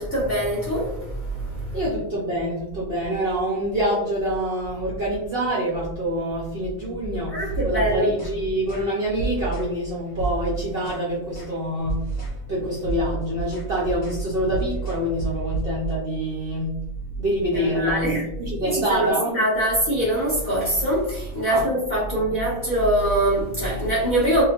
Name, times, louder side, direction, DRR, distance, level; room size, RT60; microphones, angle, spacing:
voice 1, 0.0-1.8 7.3-8.1 17.6-18.2 18.6-24.4, right 1 dB, 45° left, -7 dB, 0.6 m, -23 dB
voice 2, 1.7-16.8 17.2-19.4 21.5-21.6 22.1-22.4, equal, 65° right, -5 dB, 0.6 m, -26 dB
sound 1, 7.4-8.4 8.7-8.9 9.2-9.7 10.1-11.1 11.3-11.6 11.8-12.4 12.7-16.0, right 4 dB, 60° left, 1.1 m, -30 dB
2.8 x 2.0 x 2.7 m, 0.84 s
omnidirectional pair, 1.6 m